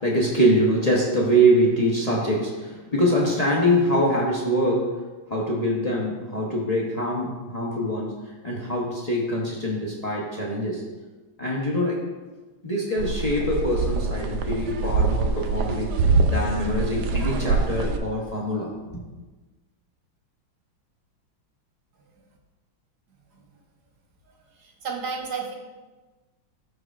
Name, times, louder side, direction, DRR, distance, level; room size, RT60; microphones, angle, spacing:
voice 1, 0.0-5.0 5.3-10.8 11.4-12.0 12.6-19.0, equal, 75° left, -4 dB, 0.3 m, -24 dB
sound 1, 13.0-18.0, right 4 dB, 75° right, 0.9 m, -24 dB
voice 2, 24.3-25.5, right 5 dB, 55° right, 0 dB, 1.5 m, -33 dB
13.5 x 4.7 x 2.5 m, 1.2 s
omnidirectional pair, 2.3 m